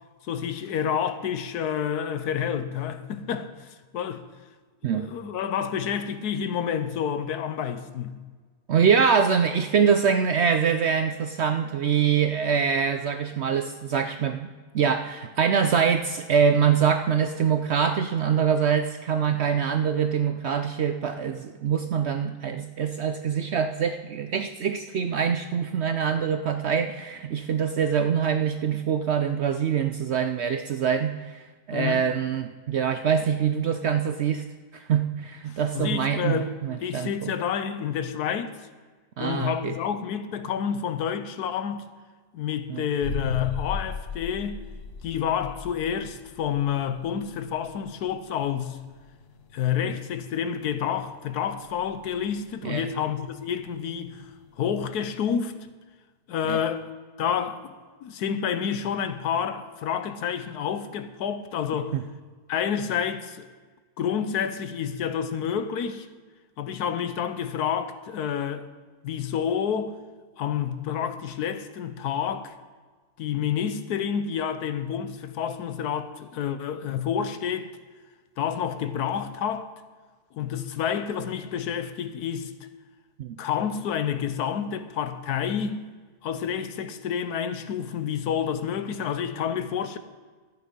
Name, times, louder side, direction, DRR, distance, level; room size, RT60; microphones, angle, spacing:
voice 1, 0.3-4.2 4.9-8.2 31.7-32.1 35.5-36.5 36.8-38.5 39.2-41.9 42.3-44.6 45.0-48.8 49.5-54.3 54.6-55.6 56.3-56.9 57.2-57.7 58.0-61.9 62.5-63.5 64.0-66.1 66.6-68.7 69.0-70.0 70.4-72.5 73.2-77.7 78.4-79.7 80.3-82.5 83.4-85.8 86.2-90.0, left 8 dB, 85° left, 1.3 m, -29 dB
voice 2, 8.7-34.5 34.7-37.3 39.2-39.7 42.7-42.8 52.6-52.9 56.5-56.6 61.9-62.0 83.2-83.4, right 7 dB, 70° right, 0.6 m, -24 dB
sound 1, 43.0-54.7, left 4 dB, 40° left, 1.5 m, -39 dB
13.5 x 8.9 x 5.4 m
omnidirectional pair, 1.6 m